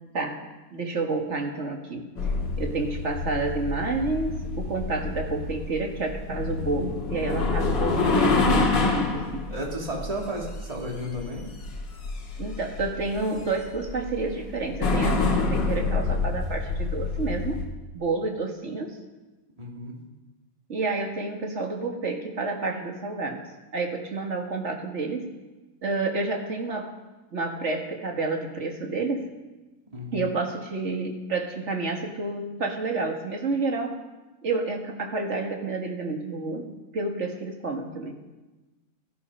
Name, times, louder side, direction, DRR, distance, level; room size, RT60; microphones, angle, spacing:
voice 1, 0.7-2.1 2.6-9.4 12.4-17.7 17.9-19.0 20.7-23.4 23.7-25.3 25.8-26.9 27.3-29.3 30.1-34.0 34.4-38.2, right 3 dB, 35° right, 2 dB, 2.1 m, -29 dB
sound 1, 2.2-17.6, left 3 dB, 65° left, 2.4 m, -27 dB
voice 2, 9.5-11.4 19.6-20.0 29.9-30.3, equal, 20° right, -2 dB, 2.7 m, -33 dB
18.5 x 12.5 x 5.5 m, 1.1 s
omnidirectional pair, 2.1 m